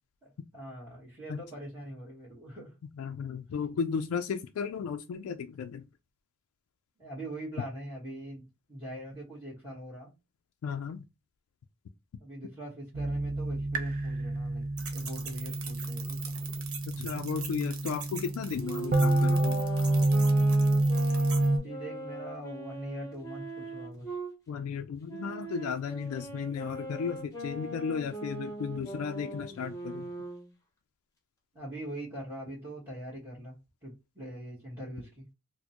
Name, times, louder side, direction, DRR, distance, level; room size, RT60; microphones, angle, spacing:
voice 1, 0.2-2.7 7.0-10.1 12.2-14.6 14.9-16.4 21.5-24.2 31.5-33.6 33.8-35.2, right 1 dB, 15° right, 1.3 m, -42 dB
voice 2, 3.0-5.8 10.6-11.0 16.9-19.6 24.5-30.1, left 6 dB, 85° left, 0.3 m, -34 dB
sound 1, 12.9-21.6, right 2 dB, 40° right, 0.5 m, -28 dB
sound 2, 14.8-21.5, right 6 dB, 80° right, 1.0 m, -43 dB
Wind instrument woodwind instrument, 18.5-24.3 25.1-30.5, right 2 dB, 15° left, 0.9 m, -40 dB
4.1 x 2.1 x 2.8 m
head